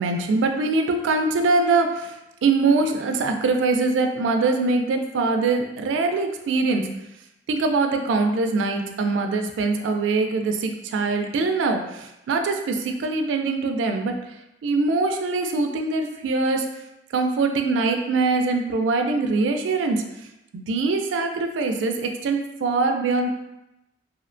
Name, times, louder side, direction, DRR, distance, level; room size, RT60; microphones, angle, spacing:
voice 1, 0.0-2.1 2.4-6.9 7.5-14.2 14.6-16.7 17.1-20.0 20.5-23.3, right 3 dB, 90° right, 5 dB, 0.3 m, -23 dB
2.7 x 2.1 x 2.5 m, 0.91 s
head